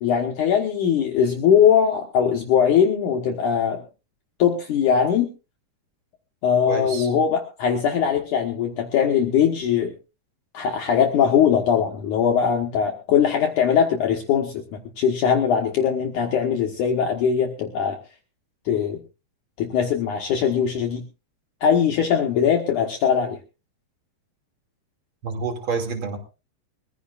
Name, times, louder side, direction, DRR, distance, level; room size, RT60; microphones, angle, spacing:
voice 1, 0.0-3.8 4.4-5.3 6.4-9.9 10.5-18.0 18.7-19.0 19.6-21.0 21.6-23.4, left 8 dB, 65° left, 2 dB, 2.4 m, -21 dB
voice 2, 6.7-7.1 25.2-26.2, right 4 dB, 35° right, 4 dB, 2.9 m, -28 dB
22.5 x 15.5 x 2.5 m, 0.31 s
omnidirectional pair, 4.5 m